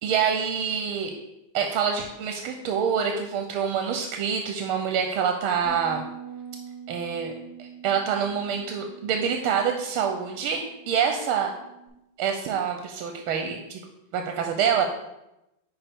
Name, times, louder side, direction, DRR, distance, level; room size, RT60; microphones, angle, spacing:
voice 1, 0.0-1.1 1.5-6.0 6.9-7.3 7.6-11.5 12.2-13.8 14.1-14.9, right 7 dB, 85° right, 4 dB, 1.5 m, -26 dB
Bass guitar, 5.6-11.9, right 5 dB, 20° right, 2.5 m, -45 dB
10.0 x 4.2 x 3.5 m, 0.91 s
omnidirectional pair, 2.3 m